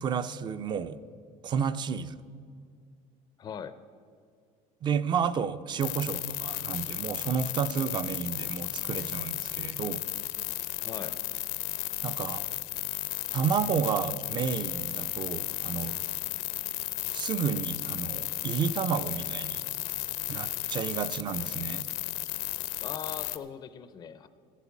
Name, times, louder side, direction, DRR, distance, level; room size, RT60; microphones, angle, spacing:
voice 1, 0.0-1.0 1.4-2.2 4.8-10.0 12.0-12.4 13.3-16.0 17.1-19.7 20.3-21.9, right 7 dB, 30° right, 14 dB, 0.4 m, -31 dB
voice 2, 3.4-3.8 10.8-11.2 22.8-24.3, left 7 dB, 30° left, 12 dB, 0.4 m, -40 dB
sound 1, 5.8-23.4, left 17 dB, 80° left, 0.7 m, -34 dB
14.0 x 8.3 x 7.1 m, 2.3 s
cardioid pair, 145°, 15 cm